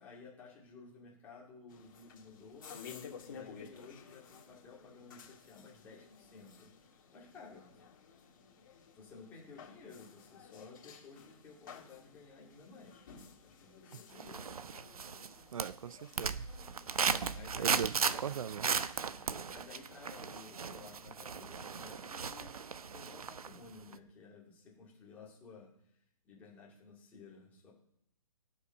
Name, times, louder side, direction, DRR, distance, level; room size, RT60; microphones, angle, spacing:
voice 1, 0.0-2.8 3.2-7.8 8.9-13.1 13.4-14.9 16.9-17.8 19.1-22.5 22.8-26.0 26.2-27.7, left 4 dB, 10° left, 2.5 m, -55 dB
sound 1, 1.7-17.4, left 6 dB, 35° left, 2.6 m, -54 dB
sound 2, 14.2-15.3 15.6-23.6 23.9-24.0, right 6 dB, 80° right, 1.0 m, -36 dB
voice 2, 15.5-16.5 17.6-18.7, right 8 dB, 65° right, 0.4 m, -39 dB
18.0 x 7.3 x 5.4 m
hypercardioid pair, 175°, 18 cm